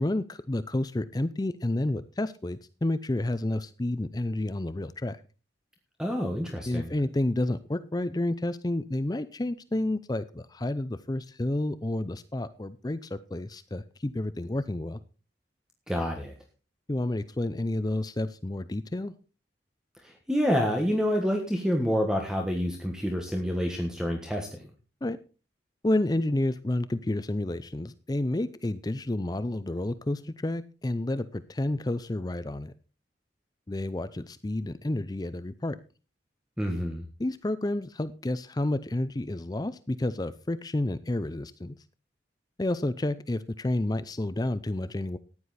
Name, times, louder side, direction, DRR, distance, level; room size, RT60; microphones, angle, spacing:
voice 1, 0.0-5.2 6.7-15.0 16.9-19.1 25.0-25.2 25.8-32.7 33.7-35.8 37.2-41.7 42.6-45.2, left 1 dB, 20° left, 13 dB, 0.5 m, -30 dB
voice 2, 6.0-6.9 15.9-16.3 20.0-24.7 36.6-37.0, equal, 5° right, 2 dB, 1.5 m, -28 dB
14.5 x 9.9 x 4.2 m, 0.35 s
head